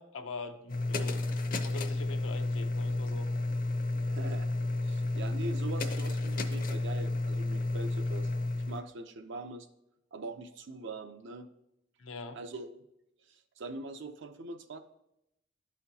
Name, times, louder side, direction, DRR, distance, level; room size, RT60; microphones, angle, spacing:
voice 1, 0.0-3.3 12.0-12.4, left 3 dB, 85° left, 6 dB, 0.7 m, -43 dB
sound 1, 0.7-8.8, left 2 dB, 45° left, 0.6 m, -31 dB
voice 2, 4.1-4.5 4.8-9.7 10.1-11.5 12.3-12.8 13.3-14.8, right 2 dB, 65° right, 8 dB, 0.6 m, -42 dB
11.5 x 4.2 x 2.8 m, 0.83 s
head